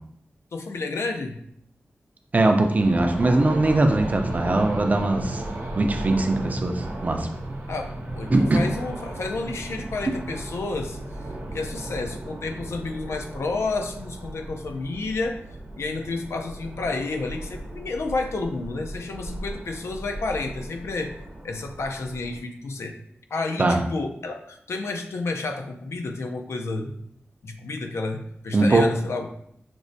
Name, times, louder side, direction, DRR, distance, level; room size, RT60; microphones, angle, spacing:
voice 1, 0.5-1.4 7.7-11.0 11.5-15.4 15.7-21.1 21.4-22.9 23.3-26.9 27.4-29.3, left 3 dB, 85° left, 4 dB, 0.4 m, -30 dB
voice 2, 2.3-5.4 5.8-7.3 8.3-8.6 23.6-23.8 28.5-28.9, right 2 dB, 35° right, 5 dB, 0.4 m, -21 dB
sound 1, 2.7-22.4, right 1 dB, 80° right, 0.7 m, -35 dB
6.0 x 2.1 x 2.6 m, 0.70 s
wide cardioid pair, 95°, 4 cm